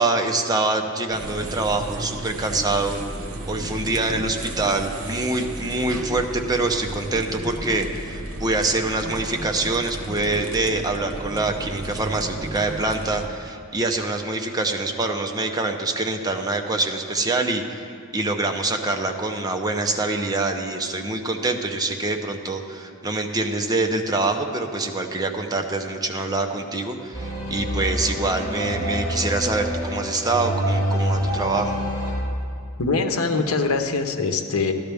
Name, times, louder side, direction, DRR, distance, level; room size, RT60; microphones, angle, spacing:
voice 1, 0.0-3.0 3.5-31.8, right 2 dB, 20° right, 4 dB, 0.7 m, -25 dB
sound 1, 1.1-13.3, right 1 dB, 75° right, 1.0 m, -33 dB
sound 2, 27.1-32.1, equal, 20° left, 3.4 m, -26 dB
voice 2, 32.8-34.7, left 4 dB, 85° left, 6 dB, 0.8 m, -23 dB
12.5 x 12.0 x 3.5 m, 2.3 s
head